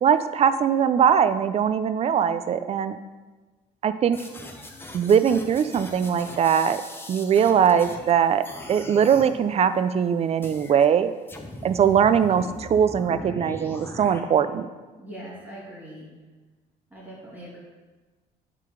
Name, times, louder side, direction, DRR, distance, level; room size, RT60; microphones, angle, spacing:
voice 1, 0.0-3.0 3.8-4.2 4.9-6.8 7.1-8.4 8.7-11.1 11.6-14.7, right 8 dB, 40° right, 12 dB, 0.4 m, -21 dB
sound 1, 4.1-8.1 8.4-9.3 10.4-10.8 11.3-14.2, left 1 dB, 15° left, 0.8 m, -40 dB
voice 2, 15.0-16.1 16.9-17.6, right 1 dB, 10° right, -7 dB, 2.0 m, -41 dB
7.5 x 3.8 x 5.0 m, 1.3 s
cardioid pair, 110°, 17 cm